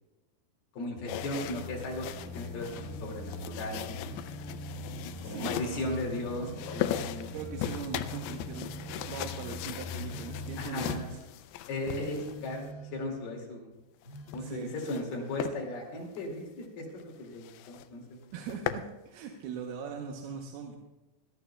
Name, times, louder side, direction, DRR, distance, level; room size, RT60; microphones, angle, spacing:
voice 1, 0.7-2.1 2.3-4.2 5.2-7.3 10.6-11.1 11.7-12.6 12.9-13.7 14.3-18.2, left 1 dB, 65° left, -1 dB, 4.0 m, -36 dB
sound 1, 1.0-11.1, left 2 dB, 50° right, 4.5 m, -43 dB
sound 2, 1.1-12.7 14.0-15.1 15.4-15.6 16.1-16.2 16.6-16.7 17.0-17.1 17.4-17.9 18.2-18.9, left 12 dB, 85° left, 2.3 m, -39 dB
Telephone, 2.7-3.2 4.0-5.2 6.0-7.2 8.0-9.3 10.0-11.2 12.0-13.3 14.0-14.6, right 1 dB, 20° left, 3.5 m, -46 dB
voice 2, 5.2-5.8 7.0-8.7 9.1-11.2 14.4-14.7 18.3-20.8, right 6 dB, 75° right, 2 dB, 2.6 m, -40 dB
20.0 x 13.0 x 2.2 m, 1.1 s
omnidirectional pair, 5.0 m